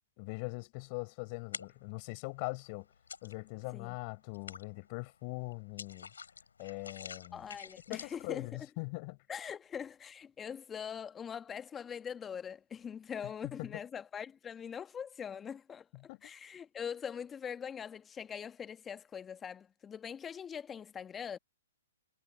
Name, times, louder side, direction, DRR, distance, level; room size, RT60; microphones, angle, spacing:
voice 1, 0.2-2.9 3.2-6.1 6.6-7.5 7.9-9.2 13.4-13.7 16.1-16.3, left 31 dB, 40° left, 4.9 m, -41 dB
sound 1, 1.3-2.0 2.4-3.7 4.0-8.3, left 6 dB, 80° left, 4.1 m, -47 dB
voice 2, 7.3-8.5 9.3-15.9 16.2-21.4, left 7 dB, 15° left, 1.4 m, -42 dB
hypercardioid pair, 125°, 0 cm